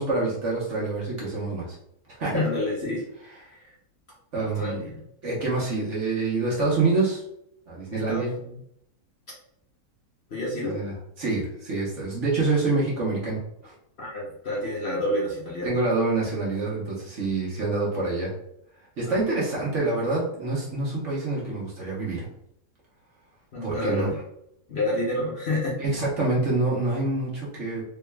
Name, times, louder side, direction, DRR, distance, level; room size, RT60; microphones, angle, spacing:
voice 1, 0.0-1.8 2.2-2.4 4.3-4.8 5.2-7.2 7.7-8.3 10.6-13.7 15.6-18.3 19.0-22.3 23.6-24.1 25.8-27.8, right 3 dB, 50° right, -5 dB, 1.2 m, -26 dB
voice 2, 2.3-3.7 4.3-5.0 8.1-8.6 10.3-10.8 14.0-15.9 19.1-19.3 23.5-24.2 24.7-25.8, left 1 dB, 45° left, -5 dB, 1.0 m, -29 dB
3.6 x 3.4 x 2.3 m, 0.76 s
omnidirectional pair, 1.8 m